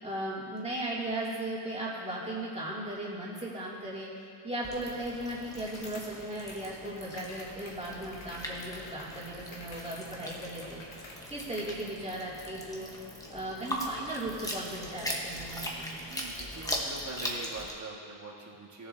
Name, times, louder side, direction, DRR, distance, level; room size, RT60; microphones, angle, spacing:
voice 1, 0.0-10.8 11.3-12.9 13.3-16.0, right 1 dB, 15° right, -7 dB, 2.5 m, -37 dB
sound 1, 4.6-17.7, equal, 5° left, 1.1 m, -40 dB
sound 2, 4.8-11.9, left 2 dB, 70° left, 1.7 m, -51 dB
voice 2, 16.0-18.9, right 3 dB, 35° right, -2 dB, 1.7 m, -43 dB
17.0 x 7.2 x 2.7 m, 2.6 s
wide cardioid pair, 130°, 48 cm